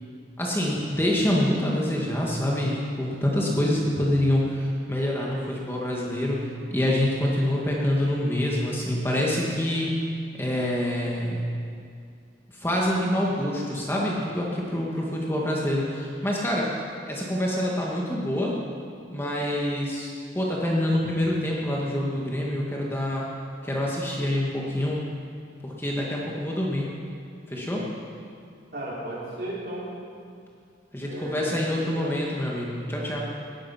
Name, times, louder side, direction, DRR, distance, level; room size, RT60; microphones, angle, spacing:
voice 1, 0.4-6.4 6.7-9.9 10.4-11.4 12.6-16.7 17.1-18.6 19.1-23.2 23.6-25.0 25.6-26.9 27.5-27.8 30.9-33.2, left 1 dB, 15° left, -3 dB, 1.7 m, -26 dB
voice 2, 28.7-29.9 31.0-32.1, right 1 dB, 55° right, -7 dB, 4.9 m, -35 dB
19.0 x 10.0 x 5.6 m, 2.3 s
head